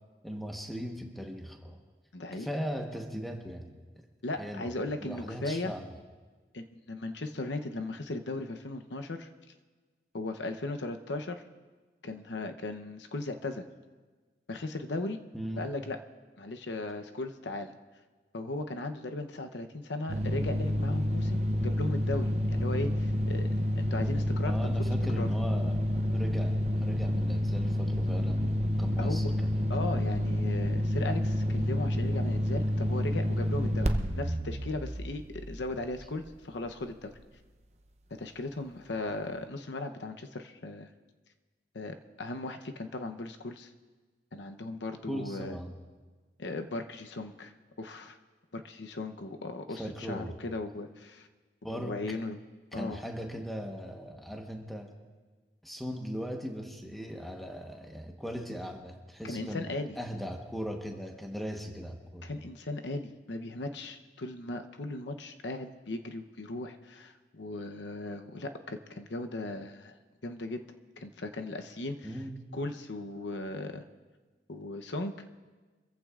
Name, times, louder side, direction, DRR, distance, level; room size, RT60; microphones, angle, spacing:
voice 1, 0.2-1.8 2.3-3.8 4.4-4.7 5.0-5.9 15.3-15.7 24.4-29.7 45.1-45.7 49.7-50.3 51.6-52.0 52.7-54.9 55.6-62.3 72.0-72.4, equal, ahead, 2 dB, 1.1 m, -39 dB
voice 2, 2.1-2.5 4.2-5.7 6.5-9.3 10.1-11.4 12.0-13.6 14.5-15.2 15.6-16.0 16.4-17.7 18.3-24.5 25.2-25.3 29.0-29.3 29.7-37.1 38.1-40.9 41.7-43.7 44.3-45.6 46.4-47.5 47.8-48.2 48.5-51.3 51.7-52.4 52.7-53.0 59.2-60.0 62.2-70.0 70.2-70.6 71.0-72.2 72.5-73.8 74.5-75.1, left 2 dB, 85° left, 6 dB, 0.8 m, -37 dB
sound 1, 20.1-36.4, equal, 40° right, 0.7 m, -29 dB
24.5 x 15.0 x 2.5 m, 1.3 s
head